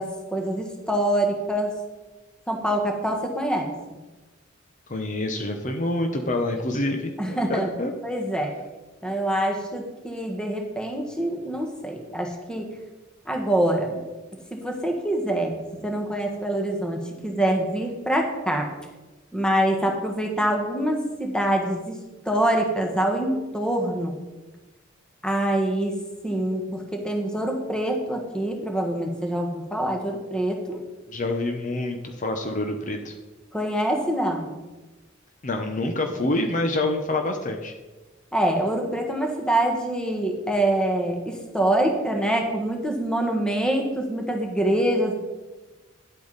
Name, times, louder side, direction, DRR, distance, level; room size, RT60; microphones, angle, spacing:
voice 1, 0.0-1.7 2.5-3.7 7.2-7.7 8.0-8.5 9.0-12.7 13.2-14.0 14.5-18.7 19.3-24.2 25.2-26.0 26.2-30.8 33.5-34.6 38.3-45.1, right 1 dB, 5° left, 2 dB, 1.4 m, -25 dB
voice 2, 4.9-7.9 31.1-33.1 35.4-37.7, left 2 dB, 40° left, 4 dB, 0.9 m, -27 dB
11.0 x 8.4 x 4.1 m, 1.1 s
head